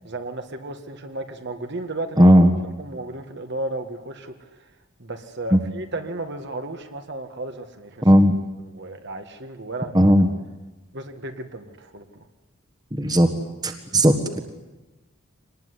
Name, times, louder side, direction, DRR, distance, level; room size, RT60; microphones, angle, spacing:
voice 1, 0.0-2.3 2.8-4.6 5.0-8.1 8.7-10.1 10.9-12.3, right 2 dB, 55° right, 6 dB, 1.9 m, -34 dB
voice 2, 2.2-2.5 5.5-5.6 8.0-8.3 9.9-10.3 12.9-13.3 13.6-14.4, equal, 20° right, 7 dB, 1.6 m, -15 dB
25.0 x 19.5 x 9.9 m, 1.1 s
head